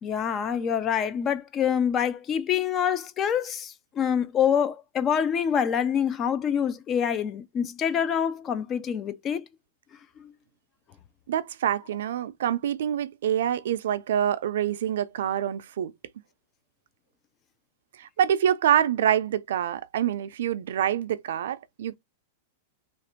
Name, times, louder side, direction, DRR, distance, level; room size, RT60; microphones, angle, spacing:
voice 1, 0.0-9.5 10.2-10.3, left 8 dB, 25° left, 0.4 m, -26 dB
voice 2, 11.3-15.9 18.0-22.0, right 10 dB, 80° right, 0.4 m, -26 dB
2.9 x 2.5 x 4.3 m
supercardioid pair, 160°, 0 cm